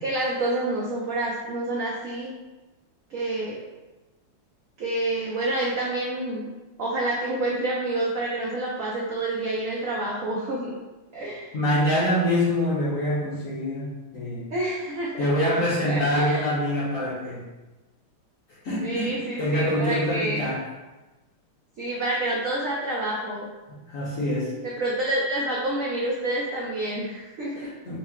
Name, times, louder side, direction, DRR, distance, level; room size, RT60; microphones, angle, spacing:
voice 1, 0.0-2.3 3.1-3.6 4.8-6.5 6.8-10.7 11.1-11.5 14.5-15.3 15.9-16.4 18.8-20.5 21.8-23.5 24.6-27.7, right 2 dB, 85° right, -5 dB, 0.7 m, -28 dB
voice 2, 11.5-14.5 15.2-17.4 18.6-19.1 19.4-20.6 23.7-24.5 27.5-28.0, left 1 dB, 55° left, -7 dB, 1.0 m, -25 dB
4.2 x 2.1 x 3.6 m, 1.1 s
omnidirectional pair, 2.2 m